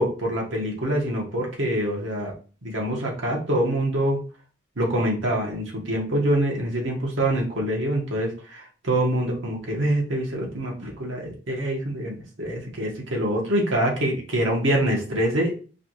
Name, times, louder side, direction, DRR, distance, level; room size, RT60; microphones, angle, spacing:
voice 1, 0.0-2.3 2.6-4.2 4.8-15.5, right 1 dB, 75° right, 0 dB, 1.3 m, -25 dB
4.7 x 2.5 x 3.1 m, 0.38 s
head